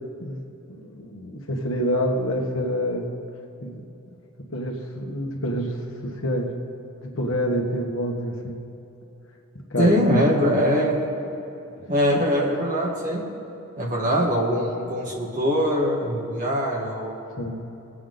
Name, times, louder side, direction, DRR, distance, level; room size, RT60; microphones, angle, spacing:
voice 1, 0.7-3.1 3.6-3.8 4.4-5.8 6.0-6.5 7.0-8.6 9.7-9.9 12.1-12.3 14.1-14.2 17.4-17.6, equal, 60° left, 1 dB, 1.5 m, -27 dB
voice 2, 9.8-11.1 11.9-13.2 13.8-17.2, equal, 35° right, -3 dB, 2.3 m, -22 dB
22.5 x 8.5 x 3.9 m, 2.9 s
head